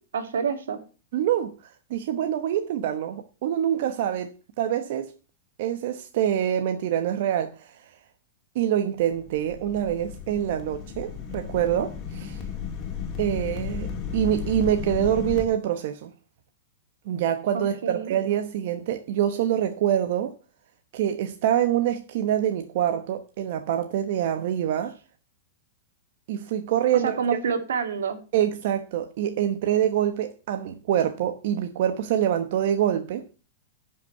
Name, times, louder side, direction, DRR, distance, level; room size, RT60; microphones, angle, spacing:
voice 1, 0.1-0.8 17.5-18.1 27.0-28.2, right 6 dB, 85° right, 2.2 m, -28 dB
voice 2, 1.1-4.3 4.6-5.1 5.6-7.8 8.5-12.4 13.2-16.1 17.1-20.3 20.9-24.9 26.3-27.2 28.3-33.3, right 10 dB, 55° right, 1.0 m, -25 dB
sound 1, 9.1-15.5, left 7 dB, 30° left, 2.2 m, -34 dB
10.0 x 5.7 x 6.5 m
hypercardioid pair, 145°, 0 cm